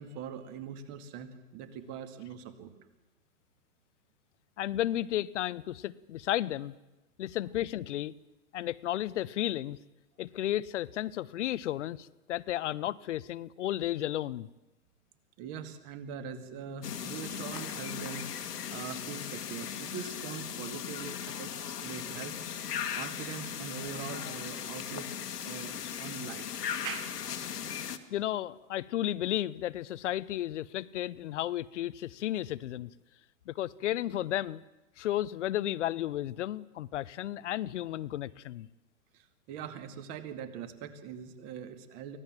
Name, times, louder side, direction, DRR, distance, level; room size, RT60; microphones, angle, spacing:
voice 1, 0.0-2.7 15.4-18.2 18.7-22.4 22.9-25.1 25.4-26.5 26.8-27.2 39.1-42.2, right 7 dB, 30° right, 8 dB, 2.2 m, -42 dB
voice 2, 4.6-6.7 7.2-8.1 8.5-9.8 10.2-14.5 28.1-32.9 33.5-34.6 35.0-38.7, left 13 dB, 50° left, 20 dB, 0.8 m, -33 dB
sound 1, 16.8-28.0, left 8 dB, 85° left, 2.0 m, -38 dB
24.5 x 18.0 x 7.5 m, 1.0 s
hypercardioid pair, 145°, 46 cm